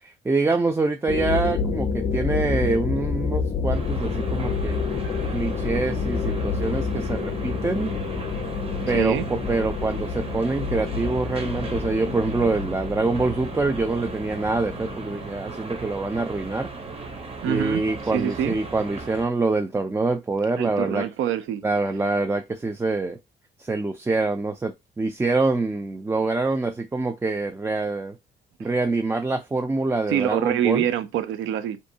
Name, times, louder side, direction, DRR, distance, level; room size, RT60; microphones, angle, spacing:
voice 1, 0.0-4.8 5.3-8.0 8.9-16.7 17.5-21.1 21.6-23.2 23.6-28.2 28.6-30.8, right 3 dB, 10° right, 0.3 m, -25 dB
sound 1, 1.1-15.3, left 5 dB, 40° left, 0.5 m, -28 dB
sound 2, 3.7-19.3, right 3 dB, 30° right, 0.7 m, -37 dB
voice 2, 8.9-9.3 17.4-17.9 18.1-18.6 20.6-21.6 28.6-28.7 30.1-31.8, right 10 dB, 80° right, 0.5 m, -25 dB
2.6 x 2.1 x 2.7 m
cardioid pair, 90°, 20 cm